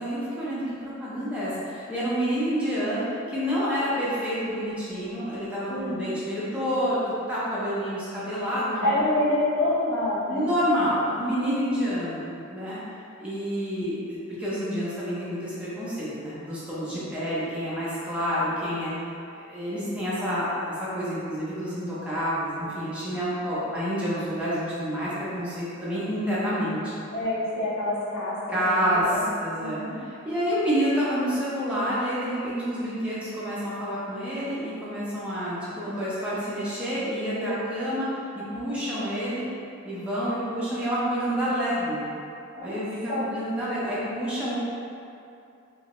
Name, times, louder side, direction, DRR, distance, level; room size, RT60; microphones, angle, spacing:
voice 1, 0.0-7.0 7.3-8.9 10.3-12.8 13.2-18.9 19.4-26.9 28.5-39.5 39.8-42.0 42.6-44.6, equal, 5° right, -10 dB, 0.7 m, -28 dB
voice 2, 5.7-6.1 8.8-10.4 11.3-11.9 27.1-29.3 29.6-30.0 37.3-37.5 42.5-42.8 43.1-43.3, left 1 dB, 80° left, -10 dB, 0.9 m, -27 dB
2.9 x 2.8 x 3.0 m, 2.6 s
head